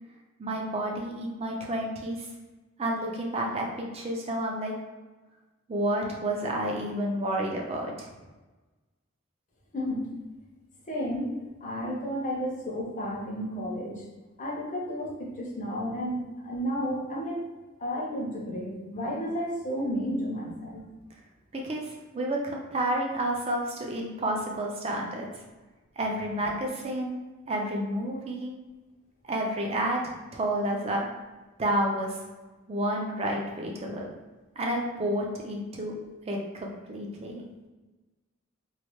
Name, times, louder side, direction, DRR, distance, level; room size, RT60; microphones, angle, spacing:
voice 1, 0.4-2.3 2.8-4.7 5.7-8.1 21.5-25.3 26.0-27.2 27.5-28.5 29.3-30.0 30.3-31.1 31.6-32.2 32.7-34.1 34.6-35.9 36.3-37.4, right 1 dB, 30° right, 0 dB, 0.4 m, -30 dB
voice 2, 9.7-10.1 10.9-14.1 14.4-17.5 17.8-20.8, equal, 40° left, -3 dB, 0.6 m, -32 dB
3.1 x 2.0 x 3.0 m, 1.2 s
head